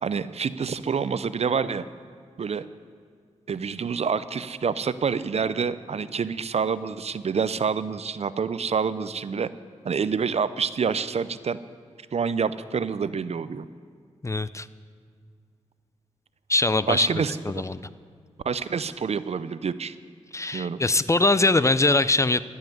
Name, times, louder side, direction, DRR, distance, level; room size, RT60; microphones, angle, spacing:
voice 1, 0.0-1.9 2.4-2.7 3.5-9.5 9.8-11.6 12.1-13.7 16.9-17.4 18.4-20.0 20.5-20.8, right 6 dB, 55° right, 15 dB, 0.5 m, -27 dB
voice 2, 14.2-14.7 16.5-17.8 20.3-22.4, left 2 dB, 25° left, 15 dB, 0.4 m, -22 dB
13.5 x 5.6 x 9.3 m, 2.1 s
supercardioid pair, 40°, 13 cm